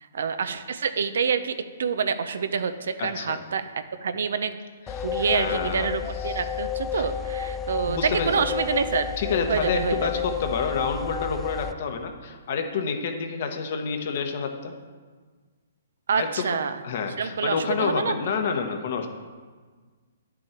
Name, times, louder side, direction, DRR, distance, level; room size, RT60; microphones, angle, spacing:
voice 1, 0.0-4.6 5.0-9.1 9.5-10.2 16.1-16.8 17.2-18.4, right 6 dB, 70° right, 10 dB, 0.6 m, -27 dB
voice 2, 3.0-3.4 4.9-5.9 6.3-6.4 6.9-7.0 7.9-8.4 9.2-14.8 16.1-16.3 16.8-19.1, left 5 dB, 55° left, 5 dB, 1.2 m, -28 dB
sound 1, 4.9-11.7, left 7 dB, 15° left, 0.4 m, -31 dB
9.6 x 6.3 x 4.4 m, 1.5 s
hypercardioid pair, 140°, 0 cm